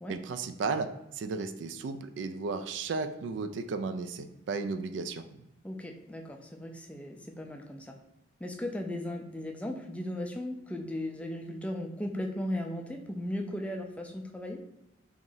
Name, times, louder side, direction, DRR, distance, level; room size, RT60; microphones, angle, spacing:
voice 1, 0.1-5.4, right 4 dB, 70° right, 9 dB, 0.3 m, -34 dB
voice 2, 5.6-8.0 8.4-14.6, left 1 dB, 5° left, 3 dB, 0.3 m, -37 dB
2.9 x 2.6 x 3.8 m, 0.89 s
head